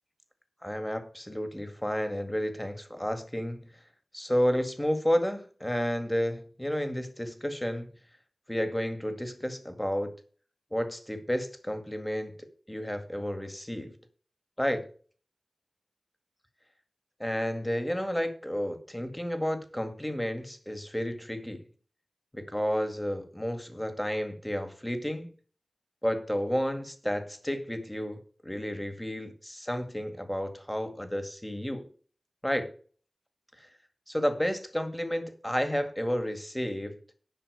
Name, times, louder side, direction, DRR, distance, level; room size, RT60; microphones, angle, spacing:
voice 1, 0.6-3.7 4.1-7.9 8.5-10.1 10.7-12.3 12.7-14.0 14.6-14.9 17.2-21.6 22.3-25.3 26.0-31.9 32.4-32.7 33.6-33.7 34.1-37.0, equal, 10° left, 8 dB, 2.1 m, -31 dB
10.5 x 6.1 x 6.7 m, 0.42 s
wide cardioid pair, 55°, 0 cm